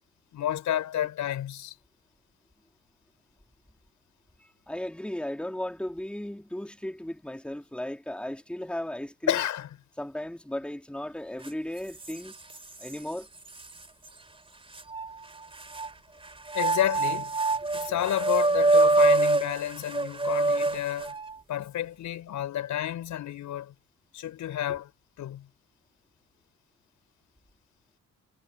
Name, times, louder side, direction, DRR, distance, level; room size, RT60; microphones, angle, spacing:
voice 1, 0.3-1.7 9.3-9.7 16.5-17.4 17.7-21.2 21.5-23.7 24.1-24.9 25.2-25.5, left 11 dB, 75° left, 6.4 m, -30 dB
voice 2, 4.4-9.4 10.0-12.4 12.8-13.3, left 1 dB, 5° left, 3.0 m, -36 dB
sound 1, 11.4-11.5 12.0-12.9 13.6-13.7 14.8-15.9 16.5-21.4, right 2 dB, 20° right, 3.1 m, -25 dB
cardioid pair, 90°, 30 cm